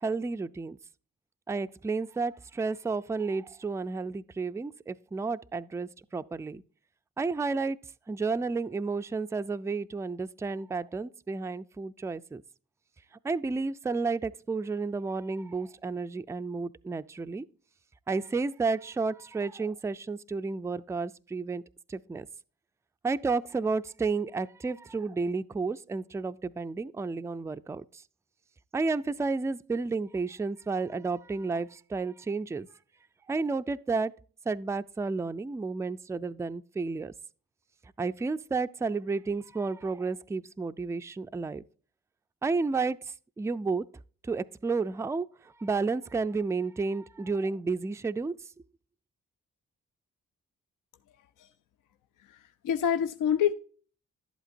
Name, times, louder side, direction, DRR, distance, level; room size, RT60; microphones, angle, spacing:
voice 1, 0.0-0.8 1.5-6.6 7.2-7.8 8.1-12.4 13.2-17.5 18.1-21.6 21.9-22.3 23.0-28.0 28.7-32.7 33.3-34.1 34.5-37.1 38.0-41.6 42.4-43.8 44.2-48.3, right 4 dB, 10° right, 0.3 m, -31 dB
voice 2, 52.3-53.5, left 9 dB, 65° left, 0.5 m, -27 dB
11.0 x 8.1 x 2.6 m
hypercardioid pair, 40°, 34 cm